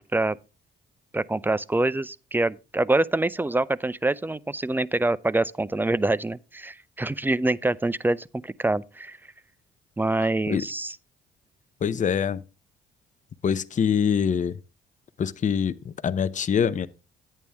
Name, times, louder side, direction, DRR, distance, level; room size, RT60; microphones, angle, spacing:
voice 1, 1.1-9.2 10.0-11.0, right 2 dB, 10° right, 0.5 m, -25 dB
voice 2, 11.8-12.4 13.4-14.6 15.2-16.9, left 7 dB, 40° left, 0.7 m, -24 dB
11.0 x 8.8 x 3.4 m
cardioid pair, 80°, 20 cm